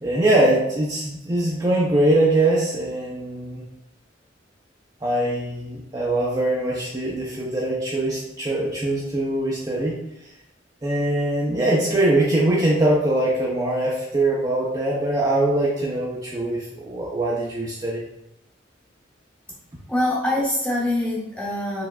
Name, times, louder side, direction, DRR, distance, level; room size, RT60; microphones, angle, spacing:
voice 1, 0.0-3.7 5.0-10.0 10.8-18.0, right 1 dB, 20° right, -5 dB, 0.5 m, -22 dB
voice 2, 19.9-21.8, left 1 dB, 5° left, -6 dB, 0.8 m, -24 dB
4.6 x 3.2 x 2.3 m, 0.85 s
head